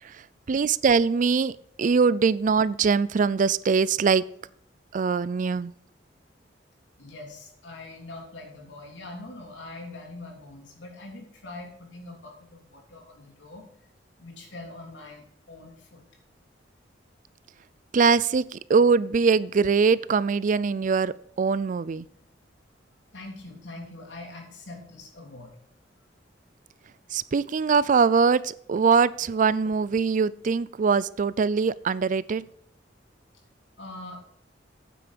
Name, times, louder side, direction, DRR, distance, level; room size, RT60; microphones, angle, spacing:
voice 1, 0.0-1.5 1.8-4.2 4.9-5.7 17.9-22.1 27.1-32.5, right 5 dB, 45° right, 19 dB, 0.4 m, -22 dB
voice 2, 7.0-13.7 14.2-16.0 23.1-25.6 33.8-34.2, left 2 dB, 85° left, 1 dB, 3.3 m, -43 dB
9.3 x 7.9 x 5.2 m, 0.68 s
head